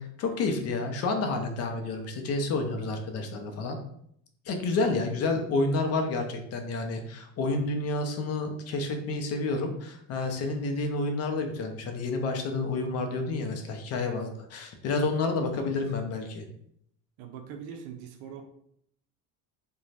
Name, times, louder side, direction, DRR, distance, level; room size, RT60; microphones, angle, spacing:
voice 1, 0.0-3.8 4.5-16.4, left 3 dB, 45° left, 4 dB, 0.5 m, -29 dB
voice 2, 17.2-18.4, right 7 dB, 75° right, 4 dB, 0.5 m, -42 dB
2.5 x 2.2 x 3.1 m, 0.70 s
cardioid pair, 135°, 36 cm